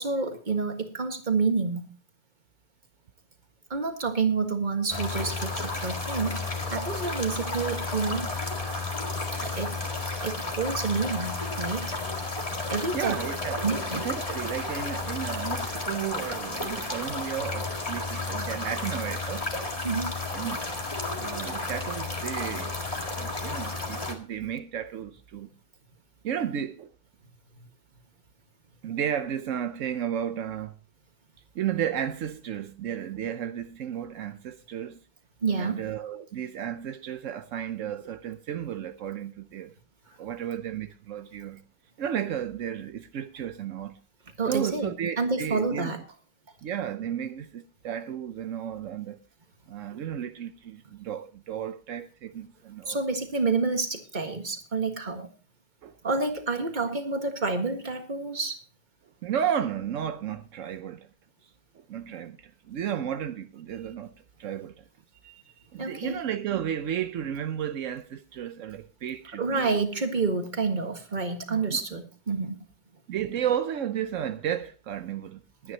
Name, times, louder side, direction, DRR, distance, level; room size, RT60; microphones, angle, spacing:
voice 1, 0.0-1.9 3.7-6.4 6.7-8.3 9.4-9.8 10.2-12.0 12.7-13.2 13.6-14.0 19.8-20.1 35.4-35.8 44.4-46.0 52.9-55.3 56.0-58.6 65.2-65.3 65.8-66.2 69.4-72.6, right 4 dB, 25° right, 1.6 m, -28 dB
sound 1, 4.9-24.1, left 3 dB, 20° left, 1.8 m, -32 dB
voice 2, 12.9-19.5 20.3-20.6 21.2-22.7 23.1-25.5 26.2-26.9 28.8-30.7 31.5-35.0 35.6-39.7 40.2-41.6 42.0-44.0 44.5-45.9 46.6-49.2 49.7-53.0 55.8-55.9 59.2-61.1 61.9-64.8 65.7-69.8 71.5-71.8 73.1-75.7, right 9 dB, 75° right, 0.7 m, -33 dB
21.0 x 9.5 x 2.9 m
omnidirectional pair, 2.2 m